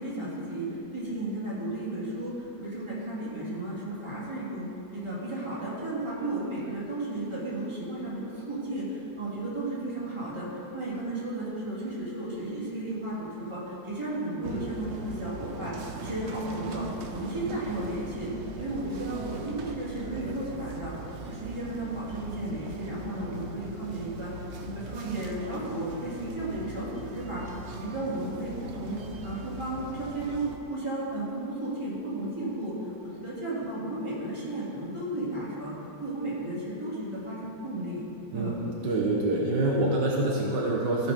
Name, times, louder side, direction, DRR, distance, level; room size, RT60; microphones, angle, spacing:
voice 1, 0.0-10.5 10.7-16.8 17.1-18.3 18.6-20.9 21.2-32.7 33.0-35.7 36.0-38.0 38.3-38.6, right 1 dB, 15° right, -8 dB, 2.9 m, -34 dB
sound 1, 14.4-30.6, right 3 dB, 55° right, 0.8 m, -40 dB
voice 2, 38.3-41.1, right 2 dB, 70° right, -3 dB, 1.7 m, -26 dB
15.0 x 6.4 x 5.2 m, 2.9 s
omnidirectional pair, 2.0 m